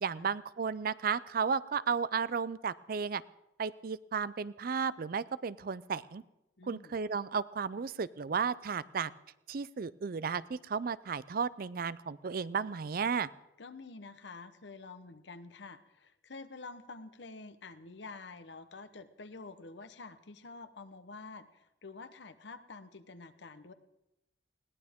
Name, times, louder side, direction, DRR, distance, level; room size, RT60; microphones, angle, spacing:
voice 1, 0.0-3.2 3.6-6.2 6.7-9.1 9.5-13.3, right 6 dB, 50° right, 18 dB, 0.4 m, -34 dB
voice 2, 6.6-7.0 13.6-23.7, left 3 dB, 70° left, 10 dB, 0.9 m, -48 dB
21.0 x 17.0 x 3.6 m, 0.89 s
head